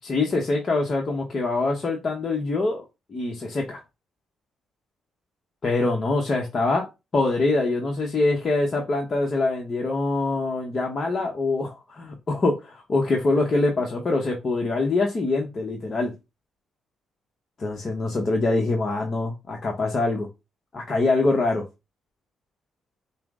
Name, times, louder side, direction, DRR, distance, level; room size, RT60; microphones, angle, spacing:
voice 1, 0.0-2.8 3.1-3.8 5.6-6.9 7.1-16.1 17.6-20.3 20.7-21.6, left 3 dB, 40° left, 0.8 m, -24 dB
5.7 x 2.0 x 3.6 m
cardioid pair, 90°, 0 cm